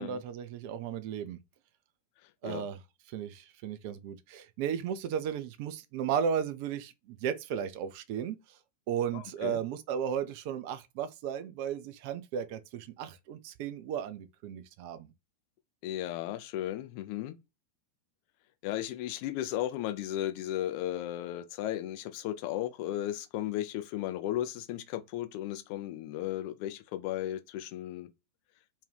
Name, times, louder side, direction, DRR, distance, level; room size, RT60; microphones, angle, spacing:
voice 1, 0.0-1.4 2.4-2.8 3.1-8.4 8.9-15.1, right 8 dB, 45° right, 0.4 m, -35 dB
voice 2, 9.1-9.6 15.8-17.4 18.6-28.1, left 13 dB, 45° left, 0.4 m, -35 dB
2.6 x 2.2 x 3.1 m
figure-of-eight pair, 90°, 0 cm